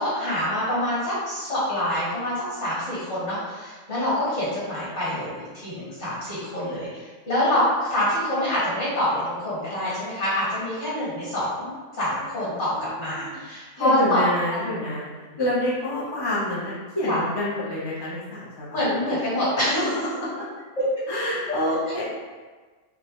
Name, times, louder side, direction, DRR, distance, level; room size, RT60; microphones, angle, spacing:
voice 1, 0.0-11.7 12.0-14.2 15.3-15.4 17.1-17.2 18.7-19.8, left 1 dB, 50° left, -10 dB, 2.0 m, -26 dB
voice 2, 12.5-13.4 13.8-15.1 15.4-18.8 19.1-19.2 19.7-19.9 20.2-20.4 21.1-22.0, left 1 dB, 35° left, -7 dB, 0.4 m, -27 dB
4.6 x 2.2 x 3.0 m, 1.4 s
omnidirectional pair, 1.6 m